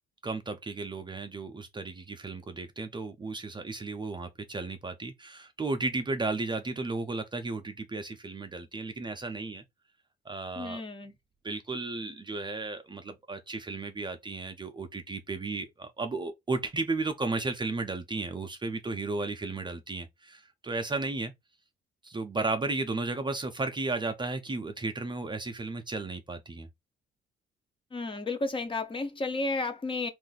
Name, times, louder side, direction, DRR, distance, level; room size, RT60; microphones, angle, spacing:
voice 1, 0.2-9.6 10.3-10.8 11.4-21.3 22.0-26.7, right 3 dB, 25° right, 0.5 m, -34 dB
voice 2, 10.6-11.1 27.9-30.1, left 3 dB, 25° left, 0.6 m, -32 dB
2.6 x 2.4 x 3.9 m
cardioid pair, 90°, 20 cm